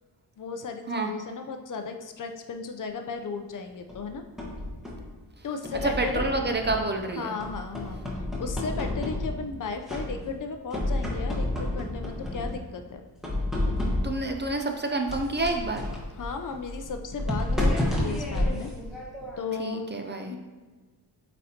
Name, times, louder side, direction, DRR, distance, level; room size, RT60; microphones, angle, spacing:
voice 1, 0.4-4.2 5.4-6.2 7.2-8.0 8.4-13.0 16.1-18.7 19.4-19.9 20.3-20.4, left 5 dB, 50° left, 6 dB, 0.6 m, -35 dB
sound 1, 3.9-5.1 5.6-7.0 7.4-9.6 9.9-10.4 10.7-12.7 13.2-14.3 15.1-19.6, left 1 dB, ahead, 1.3 m, -30 dB
voice 2, 5.8-7.3 14.0-15.9 19.6-20.4, right 2 dB, 25° right, 3 dB, 0.5 m, -28 dB
8.3 x 4.2 x 2.8 m, 1.4 s
wide cardioid pair, 130°, 42 cm